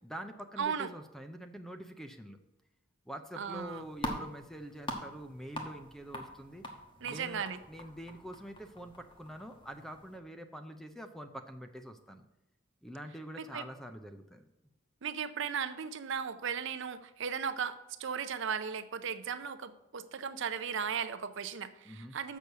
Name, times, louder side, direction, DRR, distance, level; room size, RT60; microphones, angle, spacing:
voice 1, 0.0-2.4 3.1-6.6 7.0-12.2 12.8-14.4 21.8-22.2, equal, ahead, 7 dB, 0.5 m, -45 dB
voice 2, 0.6-0.9 3.4-3.8 7.0-7.6 13.4-13.7 15.0-22.4, right 7 dB, 60° right, 11 dB, 0.5 m, -36 dB
sound 1, 3.4-10.2, left 1 dB, 25° left, 1.2 m, -44 dB
6.9 x 6.2 x 6.7 m, 0.91 s
head